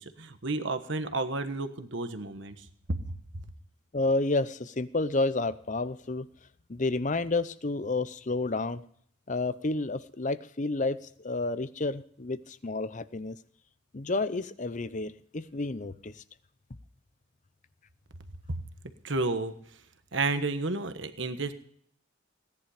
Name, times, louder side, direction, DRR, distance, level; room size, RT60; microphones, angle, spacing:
voice 1, 0.0-2.6 19.0-19.5 20.1-21.5, right 3 dB, 65° right, 9 dB, 1.3 m, -31 dB
voice 2, 3.9-6.3 6.7-8.8 9.3-11.0 11.2-13.4 13.9-16.2, left 2 dB, 35° left, 15 dB, 0.7 m, -30 dB
17.5 x 10.5 x 5.0 m, 0.64 s
head